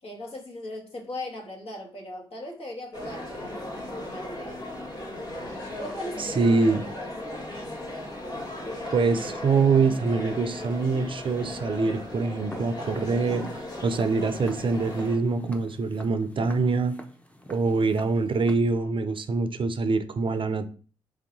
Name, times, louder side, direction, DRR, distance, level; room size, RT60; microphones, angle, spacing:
voice 1, 0.0-4.6 5.8-7.1 15.2-15.4 18.8-18.9, left 1 dB, 60° left, 0 dB, 1.4 m, -39 dB
sound 1, 2.9-15.2, left 1 dB, 35° left, 1.6 m, -37 dB
voice 2, 6.2-6.8 8.9-17.0 17.5-20.7, right 4 dB, 45° right, 10 dB, 0.5 m, -24 dB
Walk footsteps, 12.5-18.5, left 1 dB, 10° left, 0.8 m, -45 dB
3.2 x 2.8 x 3.9 m, 0.39 s
supercardioid pair, 45°, 12 cm